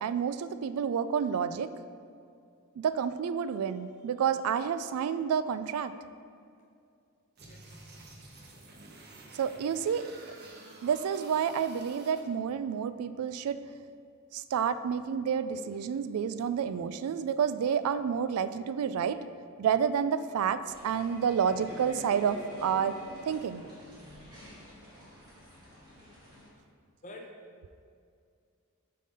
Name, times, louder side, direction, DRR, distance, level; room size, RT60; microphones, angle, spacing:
voice 1, 0.0-1.7 2.8-5.9 9.3-10.1 10.8-13.6 14.3-19.2 19.6-23.0 23.3-23.6, right 7 dB, 80° right, 14 dB, 0.3 m, -29 dB
sound 1, 7.4-12.2, right 2 dB, 45° right, 0.9 m, -50 dB
voice 2, 7.5-8.1 27.0-27.7, left 1 dB, 35° left, 2 dB, 0.7 m, -49 dB
sound 2, 20.7-26.5, left 1 dB, 20° right, 1.6 m, -48 dB
7.4 x 3.9 x 5.2 m, 2.3 s
head